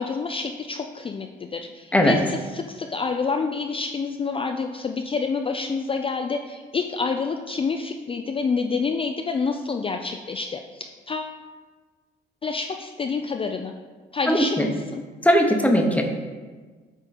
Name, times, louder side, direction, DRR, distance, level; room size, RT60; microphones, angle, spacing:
voice 1, 0.0-11.3 12.4-13.7 14.1-15.0, left 4 dB, 30° left, 4 dB, 0.4 m, -28 dB
voice 2, 14.3-14.7 15.2-16.0, equal, 5° left, 3 dB, 0.9 m, -19 dB
8.1 x 3.7 x 4.1 m, 1.4 s
cardioid pair, 90°, 20 cm